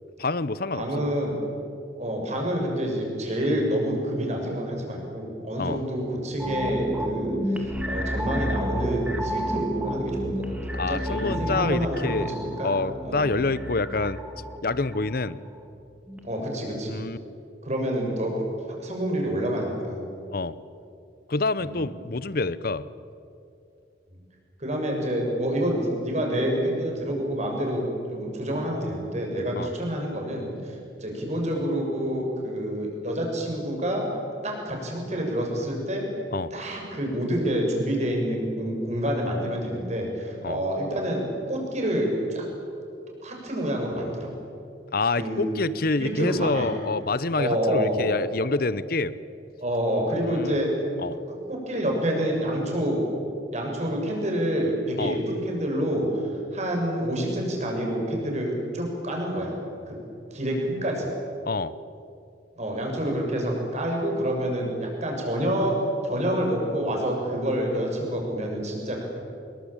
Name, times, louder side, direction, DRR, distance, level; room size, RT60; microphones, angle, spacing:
voice 1, 0.2-1.0 5.6-5.8 10.8-12.4 12.6-14.2 14.6-15.4 16.9-17.2 20.3-20.5 21.3-22.8 29.6-29.7 36.3-36.5 40.4-40.6 44.9-49.2 50.3-50.6 51.0-51.2 55.0-55.2 61.5-61.7, left 3 dB, 50° left, 17 dB, 0.8 m, -27 dB
voice 2, 0.7-1.4 2.0-10.4 10.7-12.7 13.0-13.4 16.2-17.0 17.6-18.4 18.8-20.0 21.6-21.8 24.6-34.1 34.4-36.1 36.5-42.5 43.2-44.3 45.2-45.4 46.0-46.7 47.4-48.0 49.6-50.7 51.1-53.0 53.5-56.2 56.5-59.6 59.9-60.0 60.3-61.1 62.6-65.8 66.0-69.2, equal, 40° right, 0 dB, 6.5 m, -28 dB
sound 1, 6.4-15.7 16.1-16.2, equal, 5° right, 2.3 m, -31 dB
25.5 x 22.0 x 8.9 m, 2.5 s
head